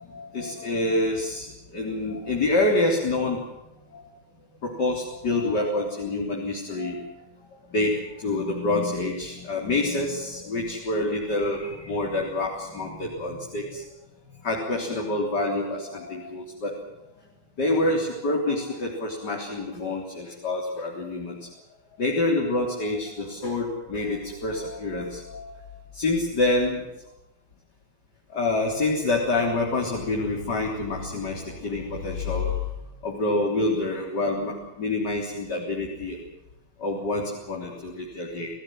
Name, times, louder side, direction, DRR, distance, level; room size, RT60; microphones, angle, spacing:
voice 1, 0.0-3.4 3.9-4.1 4.6-7.1 7.7-13.8 14.4-16.8 17.6-21.5 22.0-25.6 25.9-26.9 28.3-32.6 33.0-36.2 36.8-38.5, left 2 dB, 55° left, 0 dB, 4.1 m, -27 dB
28.5 x 17.5 x 7.7 m, 0.95 s
omnidirectional pair, 2.1 m